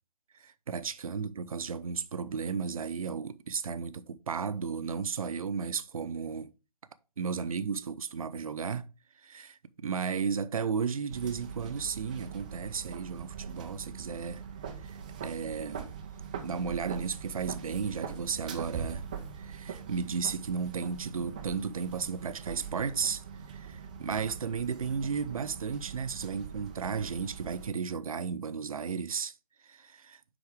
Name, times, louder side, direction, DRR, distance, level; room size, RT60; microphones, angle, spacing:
voice 1, 0.4-6.5 7.2-8.9 9.2-14.4 14.8-15.9 16.4-19.1 19.4-23.2 23.5-29.3 29.6-30.2, right 6 dB, 60° right, 0.6 m, -34 dB
sound 1, 11.1-27.7, right 7 dB, 10° right, 0.3 m, -42 dB
9.9 x 3.9 x 3.5 m
figure-of-eight pair, 145°, 21 cm